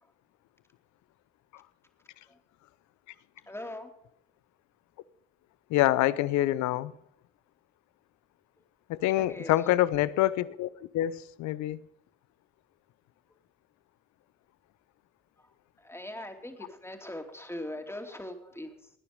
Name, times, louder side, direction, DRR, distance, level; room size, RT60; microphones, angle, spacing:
voice 1, 3.5-3.9 9.2-9.7 15.4-15.5 15.8-18.9, left 1 dB, 10° left, 2.8 m, -41 dB
voice 2, 5.7-6.9 8.9-10.7 10.9-11.8, left 14 dB, 75° left, 0.6 m, -26 dB
18.0 x 9.8 x 5.2 m
hypercardioid pair, 45°, 29 cm